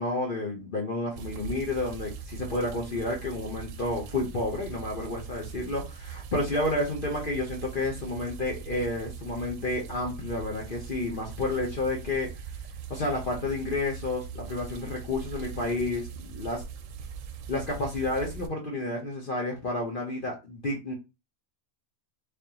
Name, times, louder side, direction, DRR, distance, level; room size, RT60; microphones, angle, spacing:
voice 1, 0.0-12.3 12.9-16.6 17.5-20.9, left 2 dB, 45° left, -2 dB, 0.9 m, -30 dB
sound 1, 1.2-18.5, right 6 dB, 75° right, 0.9 m, -41 dB
3.5 x 3.4 x 2.9 m, 0.26 s
omnidirectional pair, 1.4 m